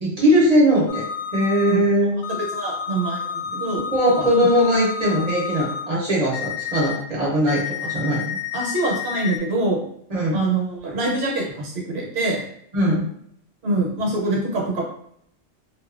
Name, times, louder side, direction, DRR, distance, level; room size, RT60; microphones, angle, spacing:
voice 1, 0.0-1.0 1.3-2.2 3.9-8.4 10.1-10.4 12.7-13.1, equal, 35° right, -5 dB, 0.8 m, -20 dB
sound 1, 0.9-1.7 2.2-5.8 6.3-7.0 7.5-9.4, left 7 dB, 75° left, 0.3 m, -30 dB
voice 2, 2.3-3.8 4.2-4.3 8.5-9.8 10.3-12.4 13.6-14.8, right 2 dB, 65° right, -1 dB, 1.1 m, -25 dB
2.6 x 2.3 x 2.4 m, 0.68 s
omnidirectional pair, 1.2 m